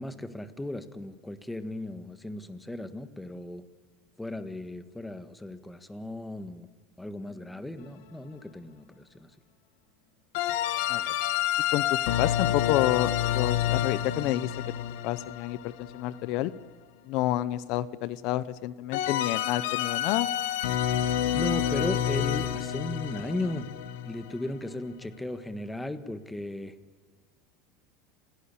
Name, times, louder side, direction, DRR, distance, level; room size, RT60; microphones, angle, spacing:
voice 1, 0.0-3.7 4.2-6.7 7.0-9.3 21.3-23.8 24.0-26.7, left 1 dB, 5° left, 11 dB, 1.5 m, -36 dB
sound 1, 10.3-16.3 18.9-24.7, left 11 dB, 75° left, 1.8 m, -29 dB
voice 2, 11.7-14.5 15.0-16.5 17.1-20.3, left 15 dB, 55° left, 17 dB, 0.8 m, -29 dB
29.0 x 17.5 x 8.5 m, 1.4 s
supercardioid pair, 140°, 0 cm